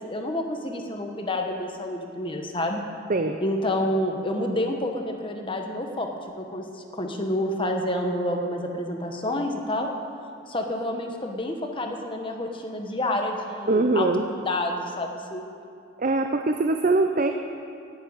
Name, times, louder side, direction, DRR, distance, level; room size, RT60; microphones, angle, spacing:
voice 1, 0.0-2.8 3.4-6.1 6.4-9.9 10.5-15.5, left 1 dB, 25° left, 3 dB, 1.2 m, -29 dB
voice 2, 13.7-14.3 16.0-17.3, right 2 dB, 40° right, 5 dB, 0.5 m, -22 dB
11.0 x 9.6 x 9.0 m, 2.5 s
head